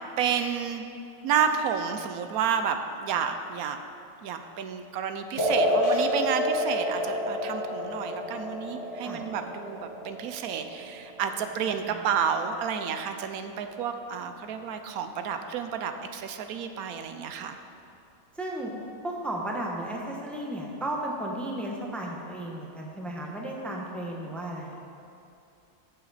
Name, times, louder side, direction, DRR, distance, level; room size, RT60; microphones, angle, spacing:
voice 1, 0.2-0.9 1.2-3.8 4.2-17.6, right 7 dB, 85° right, 7 dB, 1.1 m, -30 dB
sound 1, 5.4-12.4, left 1 dB, 45° left, 1.5 m, -29 dB
voice 2, 18.4-18.7 19.0-24.8, right 1 dB, ahead, -1 dB, 0.8 m, -34 dB
14.5 x 5.8 x 4.1 m, 2.7 s
omnidirectional pair, 1.5 m